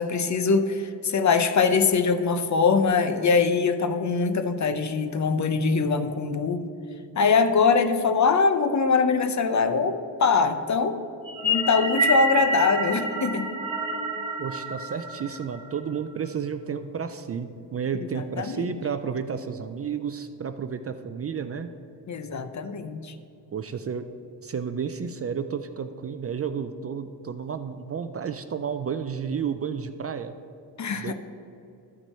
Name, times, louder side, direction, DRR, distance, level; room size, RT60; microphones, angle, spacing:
voice 1, 0.0-6.7 7.2-11.0 11.4-13.5 17.9-18.7 22.1-23.2 30.8-31.1, left 5 dB, 40° left, 9 dB, 0.7 m, -23 dB
sound 1, 11.3-15.8, equal, 10° right, 1.4 m, -28 dB
voice 2, 14.4-21.7 23.5-24.1 24.4-30.3 30.9-31.1, right 6 dB, 35° right, 10 dB, 0.4 m, -31 dB
12.5 x 6.0 x 4.4 m, 2.7 s
cardioid pair, 80°, 42 cm